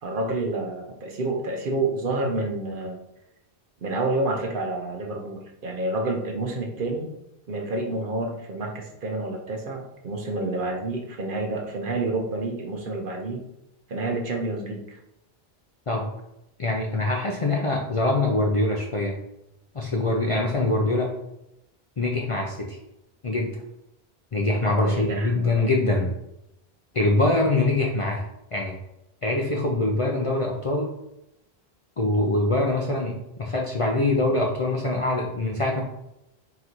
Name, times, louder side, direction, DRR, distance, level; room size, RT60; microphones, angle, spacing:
voice 1, 0.0-3.0 3.8-7.1 7.5-13.4 13.9-15.0 24.8-25.5, right 2 dB, 60° right, 1 dB, 0.9 m, -29 dB
voice 2, 16.6-19.2 19.7-21.2 22.0-22.8 23.2-23.6 24.3-26.1 26.9-28.8 29.2-30.9 32.0-35.8, left 2 dB, 45° left, 0 dB, 0.5 m, -24 dB
3.9 x 2.6 x 4.4 m, 0.84 s
omnidirectional pair, 1.1 m